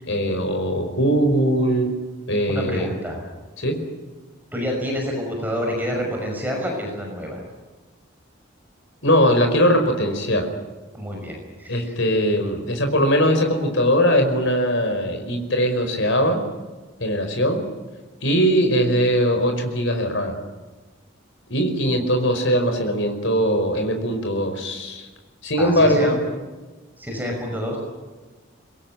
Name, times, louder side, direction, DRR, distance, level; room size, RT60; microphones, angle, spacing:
voice 1, 0.1-1.9 2.3-2.9 3.6-3.8 9.0-10.5 11.7-16.4 17.0-17.6 18.2-20.4 21.5-25.1 25.4-26.2, equal, 65° left, 5 dB, 5.0 m, -20 dB
voice 2, 2.5-3.2 4.5-7.4 10.9-11.9 25.6-26.2 27.0-27.8, equal, 10° right, 1 dB, 5.9 m, -28 dB
24.5 x 22.0 x 9.3 m, 1.2 s
head